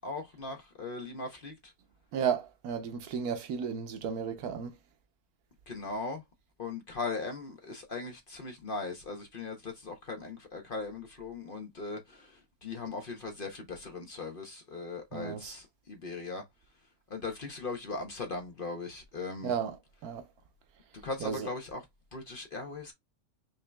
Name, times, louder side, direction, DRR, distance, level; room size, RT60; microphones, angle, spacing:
voice 1, 0.0-1.7 5.7-6.2 6.6-16.4 17.1-19.5 20.9-21.8 22.1-22.9, left 3 dB, 45° left, 0.8 m, -39 dB
voice 2, 2.1-4.7 15.1-15.5 19.4-19.8 20.0-20.3 21.2-21.5, right 7 dB, 80° right, 1.2 m, -33 dB
5.3 x 2.7 x 2.2 m
omnidirectional pair, 1.5 m